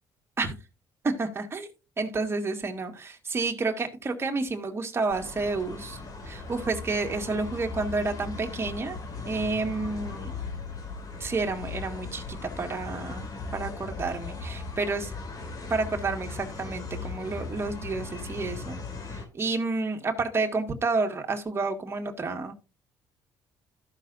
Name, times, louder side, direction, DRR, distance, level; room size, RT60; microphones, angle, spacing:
voice 1, 1.0-1.7 2.0-6.0 6.2-9.0 9.3-10.3 11.2-15.1 15.7-18.8 19.1-22.5, right 3 dB, 30° right, 1.7 m, -30 dB
sound 1, 5.1-19.3, left 3 dB, 45° left, 2.4 m, -38 dB
14.5 x 5.8 x 2.6 m
cardioid pair, 90°, 8 cm